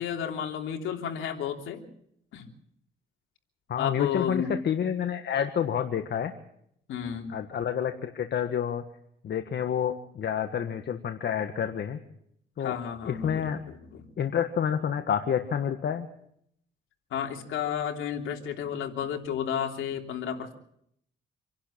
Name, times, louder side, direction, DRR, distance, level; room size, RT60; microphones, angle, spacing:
voice 1, 0.0-1.8 2.3-2.5 3.8-4.5 6.9-7.3 12.6-13.4 13.9-14.0 17.1-20.5, left 8 dB, 80° left, 3 dB, 3.2 m, -32 dB
voice 2, 3.7-6.3 7.3-8.8 9.2-12.0 12.6-12.8 13.1-13.6 14.2-16.1, left 8 dB, 60° left, 7 dB, 1.6 m, -29 dB
27.0 x 11.5 x 8.8 m, 0.71 s
cardioid pair, 90°, 20 cm